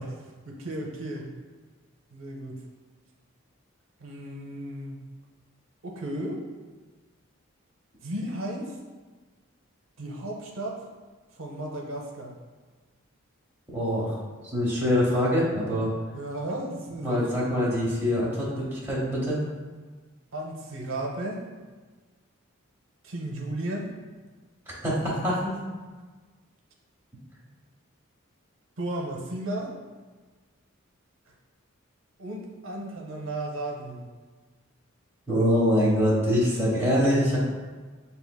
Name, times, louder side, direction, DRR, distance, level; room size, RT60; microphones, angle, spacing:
voice 1, 0.0-1.4 2.1-2.6 4.0-5.0 5.8-6.4 8.0-8.8 10.0-10.8 11.3-12.4 16.1-17.7 20.3-21.4 23.0-23.9 28.8-29.7 32.2-34.1, right 1 dB, 70° right, -1 dB, 0.6 m, -34 dB
voice 2, 13.7-14.2 14.5-15.9 17.0-19.4 24.7-25.6 35.3-37.4, equal, 10° right, -7 dB, 1.0 m, -24 dB
6.7 x 2.7 x 2.2 m, 1.4 s
head